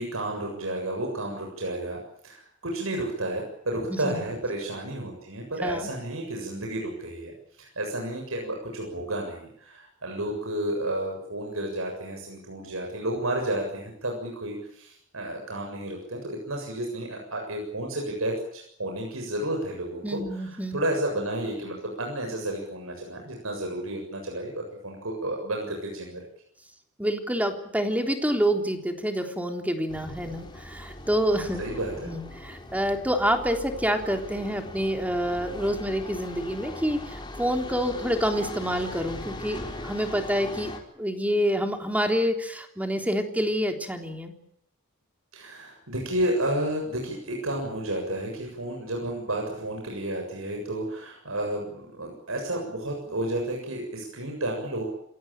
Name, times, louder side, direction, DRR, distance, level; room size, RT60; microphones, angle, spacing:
voice 1, 0.0-26.2 31.6-32.1 45.3-54.8, right 1 dB, 85° right, 1 dB, 7.3 m, -31 dB
voice 2, 3.9-4.3 5.6-5.9 20.0-20.8 27.0-31.6 32.0-44.3, equal, 5° right, 5 dB, 3.5 m, -27 dB
sound 1, 29.9-40.8, left 1 dB, 20° left, 4.5 m, -40 dB
28.0 x 18.0 x 9.0 m, 0.74 s
head